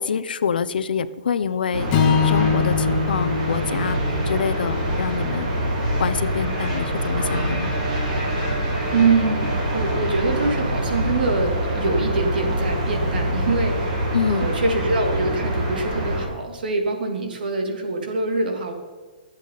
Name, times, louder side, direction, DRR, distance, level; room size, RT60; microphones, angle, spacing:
voice 1, 0.0-1.9 2.2-4.0 4.3-5.5 6.0-7.7 14.1-14.5, left 6 dB, 80° left, 13 dB, 0.8 m, -26 dB
sound 1, 1.7-16.3, right 1 dB, 40° right, 5.2 m, -25 dB
Strum, 1.9-6.2, left 6 dB, 25° left, 1.7 m, -24 dB
voice 2, 8.9-18.7, right 3 dB, 80° right, 3 dB, 3.1 m, -24 dB
23.5 x 8.1 x 4.1 m, 1.4 s
hypercardioid pair, 160°, 5 cm